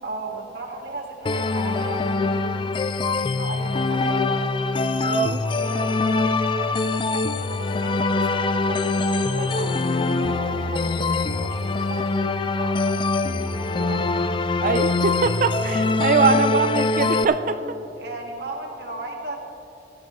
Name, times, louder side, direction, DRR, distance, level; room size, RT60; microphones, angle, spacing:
voice 1, 0.0-3.0 3.3-4.3 5.4-12.1 12.6-14.0 16.1-16.2 17.6-17.7 18.0-19.5, right 2 dB, 60° right, 0 dB, 1.7 m, -36 dB
sound 1, 1.3-17.3, left 3 dB, 25° left, 0.3 m, -23 dB
voice 2, 5.0-5.4 14.6-17.6, right 4 dB, 45° right, 10 dB, 0.4 m, -22 dB
16.5 x 12.0 x 3.1 m, 2.9 s
head